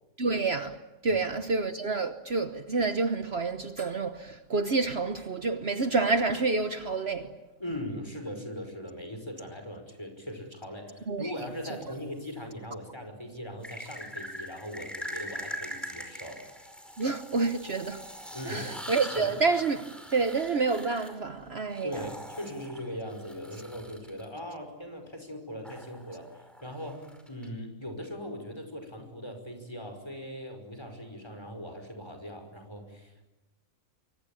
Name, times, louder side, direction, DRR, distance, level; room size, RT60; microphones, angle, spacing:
voice 1, 0.2-0.8 1.0-7.3 11.1-11.2 17.0-18.0 18.5-19.8 20.1-21.9, right 4 dB, 50° right, 1.3 m, -28 dB
voice 2, 7.6-16.5 18.3-18.7 19.1-19.4 21.8-33.3, equal, 20° left, 5.5 m, -40 dB
sound 1, 11.4-12.3 13.6-24.2 25.6-27.5, equal, ahead, 4.9 m, -43 dB
25.5 x 24.5 x 8.7 m
omnidirectional pair, 1.4 m